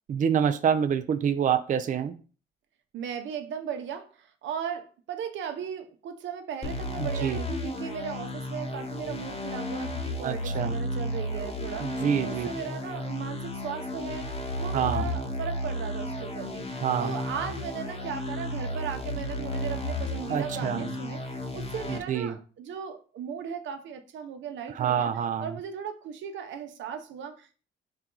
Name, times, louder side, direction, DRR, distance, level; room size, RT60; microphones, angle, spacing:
voice 1, 0.1-2.1 7.0-7.4 10.2-10.7 11.8-12.5 14.7-15.1 16.8-17.1 20.3-20.9 21.9-22.4 24.7-25.5, right 8 dB, 40° right, 0.4 m, -27 dB
voice 2, 2.9-14.3 14.6-25.1 25.4-27.6, right 7 dB, 70° right, 0.7 m, -37 dB
sound 1, 6.6-22.0, left 1 dB, 30° left, 0.9 m, -33 dB
4.4 x 2.3 x 3.7 m
cardioid pair, 90°, 20 cm